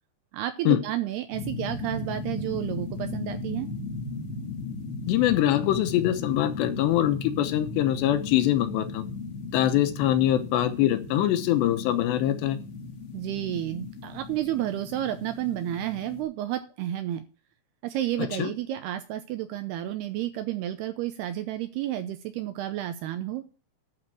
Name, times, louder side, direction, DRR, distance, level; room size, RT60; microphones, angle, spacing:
voice 1, 0.3-3.7 13.1-17.3 17.8-23.4, right 13 dB, 85° right, 9 dB, 2.4 m, -31 dB
sound 1, 1.3-16.2, left 3 dB, 60° left, 1.5 m, -36 dB
voice 2, 5.1-9.0 9.5-12.6 18.4-18.5, left 12 dB, 75° left, 9 dB, 3.0 m, -23 dB
12.0 x 4.4 x 7.6 m, 0.36 s
omnidirectional pair, 5.3 m